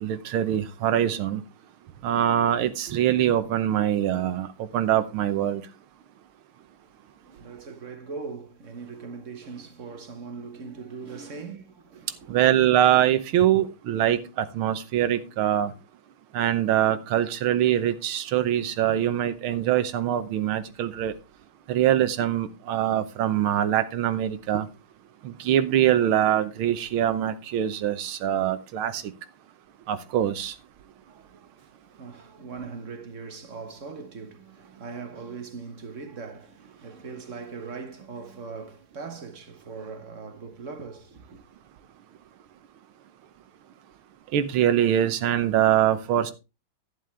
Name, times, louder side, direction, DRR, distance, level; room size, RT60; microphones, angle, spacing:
voice 1, 0.0-1.4 2.0-4.5 4.7-5.6 12.3-15.7 16.3-21.1 21.7-24.7 25.2-29.0 29.9-30.5 44.3-46.3, right 11 dB, 85° right, 1.7 m, -23 dB
voice 2, 7.2-12.5 31.0-41.5, right 4 dB, 40° right, 1.6 m, -40 dB
11.5 x 10.0 x 3.4 m
omnidirectional pair, 2.2 m